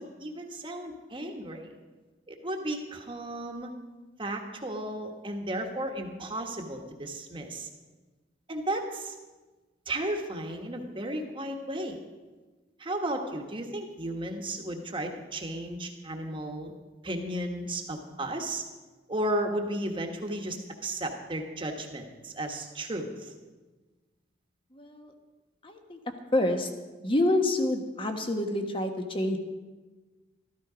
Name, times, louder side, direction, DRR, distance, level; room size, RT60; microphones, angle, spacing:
voice 1, 0.0-1.7 2.3-3.7 4.2-7.7 8.5-9.1 9.9-12.0 12.8-16.7 17.0-18.6 19.1-23.3, right 1 dB, 30° right, 3 dB, 1.4 m, -34 dB
voice 2, 24.7-25.1 25.6-26.0 26.3-26.7 27.0-29.4, left 1 dB, 30° left, 5 dB, 1.3 m, -27 dB
13.5 x 13.5 x 5.0 m, 1.3 s
head